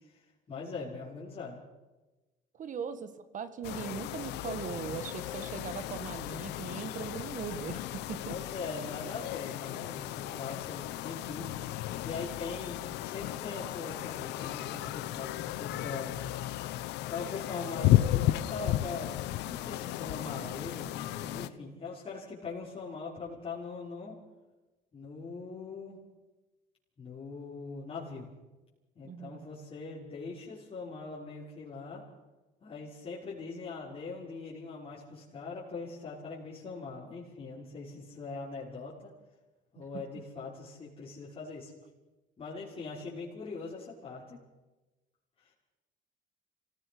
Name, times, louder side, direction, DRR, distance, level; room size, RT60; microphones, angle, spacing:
voice 1, 0.5-1.6 8.3-11.5 12.0-16.1 17.1-19.1 19.4-24.2 24.9-26.0 27.0-28.3 28.9-32.0 32.6-39.1 39.7-41.7 42.4-44.4 45.4-45.5, left 4 dB, 35° left, -7 dB, 5.9 m, -41 dB
voice 2, 2.6-8.4 29.0-29.5 39.8-40.0, right 7 dB, 50° right, 12 dB, 2.0 m, -40 dB
sound 1, 3.6-21.5, left 14 dB, 90° left, 0.9 m, -34 dB
27.0 x 17.5 x 6.3 m, 1.1 s
cardioid pair, 110°, 17 cm